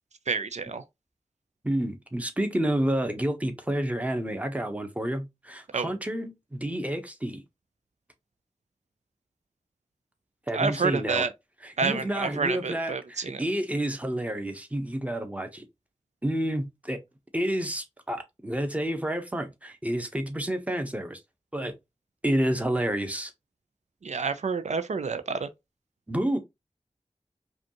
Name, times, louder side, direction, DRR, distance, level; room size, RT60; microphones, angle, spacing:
voice 1, 0.3-0.8 5.7-5.9 10.5-11.3 11.8-13.4 24.0-25.5, right 5 dB, 85° right, 0.5 m, -29 dB
voice 2, 1.6-7.4 10.5-11.2 11.6-15.7 16.2-17.0 17.3-21.2 21.5-21.7 22.2-23.3 26.1-26.4, right 1 dB, 10° right, 0.9 m, -29 dB
5.0 x 2.4 x 2.9 m
wide cardioid pair, 70°, 12 cm